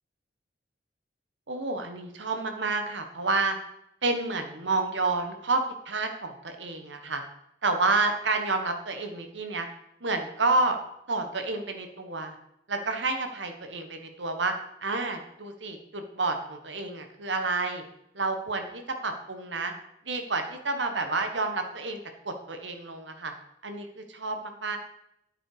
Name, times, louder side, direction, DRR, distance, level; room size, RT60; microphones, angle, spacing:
voice 1, 1.5-3.6 4.0-7.2 7.6-9.7 10.0-10.8 11.1-12.4 12.7-14.5 14.8-17.8 18.1-19.7 20.0-23.3 23.6-24.8, right 3 dB, 85° right, 6 dB, 1.5 m, -29 dB
9.8 x 8.5 x 5.0 m, 0.78 s
head